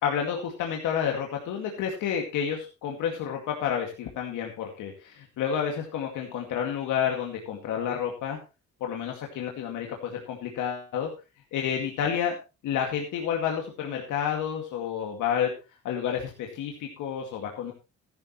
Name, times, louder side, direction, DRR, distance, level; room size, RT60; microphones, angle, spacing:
voice 1, 0.0-8.4 8.8-11.1 11.5-12.4 12.6-15.5 15.8-17.7, left 8 dB, 90° left, 1 dB, 2.3 m, -30 dB
14.5 x 12.0 x 3.2 m, 0.29 s
cardioid pair, 90°, 30 cm